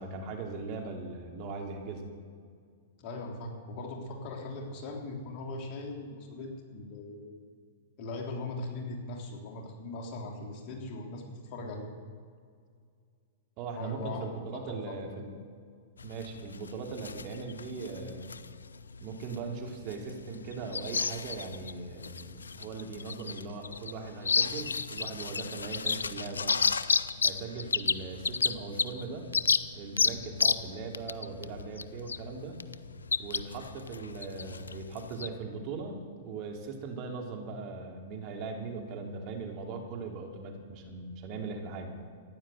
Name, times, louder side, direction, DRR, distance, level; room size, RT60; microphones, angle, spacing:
voice 1, 0.0-2.1 13.6-15.3 16.0-18.3 19.0-26.6 27.2-29.3 29.7-32.6 33.2-42.0, right 4 dB, 40° right, 2 dB, 2.9 m, -40 dB
voice 2, 3.0-7.3 8.0-11.9 13.7-15.0, left 2 dB, 45° left, 1 dB, 3.2 m, -40 dB
sound 1, 16.0-35.3, left 5 dB, 80° left, 0.6 m, -32 dB
14.5 x 10.0 x 7.8 m, 2.1 s
figure-of-eight pair, 100°, 0 cm